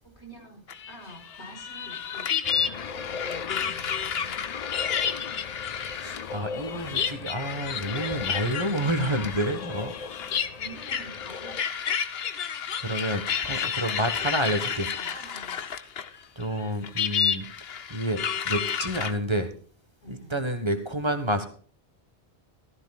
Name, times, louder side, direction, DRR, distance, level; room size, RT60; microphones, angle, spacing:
voice 1, 0.1-2.3 2.7-4.1 9.1-9.6 10.0-10.1 10.5-11.8 13.5-14.0 14.9-15.6 20.0-20.4, equal, 85° left, 0 dB, 4.8 m, -47 dB
sound 1, 0.7-16.2 16.4-19.1, left 7 dB, 65° left, 1.1 m, -31 dB
sound 2, 2.4-11.6, left 5 dB, 50° left, 0.6 m, -39 dB
voice 2, 5.9-9.9 12.8-14.9 16.3-19.5 20.1-21.5, right 1 dB, 25° right, 7 dB, 1.4 m, -29 dB
15.5 x 13.5 x 2.4 m, 0.43 s
omnidirectional pair, 1.1 m